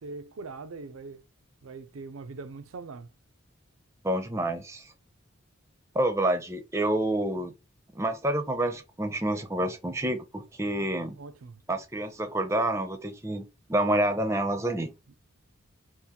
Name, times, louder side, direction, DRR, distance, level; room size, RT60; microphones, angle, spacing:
voice 1, 0.0-1.2 1.6-3.1 11.2-11.6 15.1-15.2, right 3 dB, 85° right, 0.5 m, -41 dB
voice 2, 4.0-4.8 5.9-7.5 8.0-11.1 11.7-13.4 13.7-14.9, right 1 dB, 15° right, 0.5 m, -28 dB
3.6 x 2.5 x 2.8 m
head